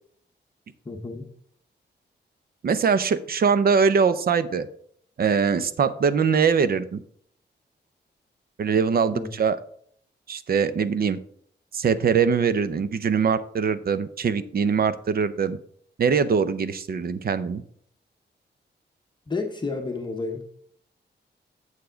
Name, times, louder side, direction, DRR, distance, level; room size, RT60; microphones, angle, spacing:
voice 1, 0.8-1.3 9.1-9.3 19.3-20.4, left 3 dB, 25° left, 2 dB, 0.9 m, -31 dB
voice 2, 2.6-4.7 5.2-7.0 8.6-9.6 10.3-11.2 11.7-15.6 16.0-17.6, right 6 dB, 55° right, 12 dB, 0.6 m, -22 dB
8.2 x 7.0 x 3.8 m, 0.63 s
wide cardioid pair, 160°, 18 cm